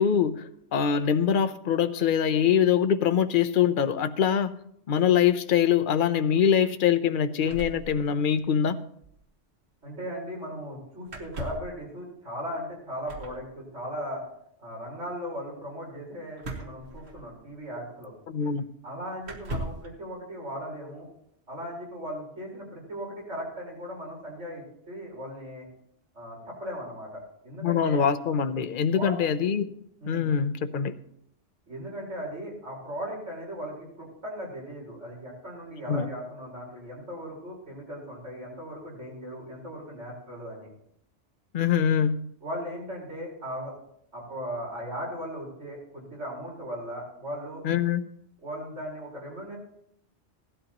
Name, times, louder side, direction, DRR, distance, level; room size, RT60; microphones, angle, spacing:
voice 1, 0.0-4.5 4.9-8.8 18.3-18.7 27.6-29.7 30.1-30.9 35.9-36.1 41.5-42.2 47.6-48.1, left 8 dB, 50° left, 10 dB, 0.8 m, -24 dB
sound 1, 7.4-8.5 8.8-8.9 9.0-9.2 11.1-11.8 13.0-13.4 16.4-17.5 18.4-18.5 19.2-19.9, right 1 dB, 65° right, 1.8 m, -38 dB
voice 2, 9.8-14.2 14.6-18.1 18.8-21.1 21.5-25.7 26.1-28.0 28.9-29.1 30.0-30.3 31.7-40.7 42.4-43.7 44.1-47.6 48.4-49.6, equal, 85° right, -3 dB, 4.9 m, -37 dB
17.0 x 12.0 x 3.0 m, 0.72 s
omnidirectional pair, 1.2 m